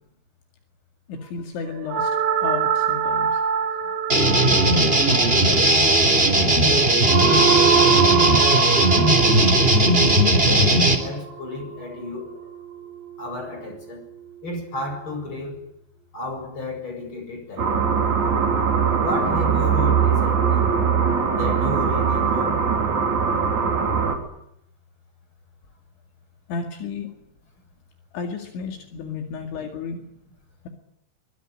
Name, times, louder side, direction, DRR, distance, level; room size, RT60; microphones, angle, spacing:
voice 1, 1.1-2.1 2.4-3.4 3.9-4.0 26.5-27.1 28.1-30.0, left 5 dB, 75° left, 4.5 m, -32 dB
sound 1, 1.9-12.1, right 7 dB, 70° right, 4.0 m, -24 dB
sound 2, 4.1-10.9, right 1 dB, 15° right, 2.7 m, -17 dB
voice 2, 5.5-6.0 6.6-7.8 8.5-9.0 10.1-12.3 13.2-14.0 14.4-15.6 16.1-17.7 17.9-18.0 18.7-20.7 21.4-22.6, left 2 dB, 25° left, 7.8 m, -33 dB
sound 3, 17.6-24.2, right 6 dB, 40° right, 4.5 m, -21 dB
23.5 x 23.5 x 9.9 m
omnidirectional pair, 5.5 m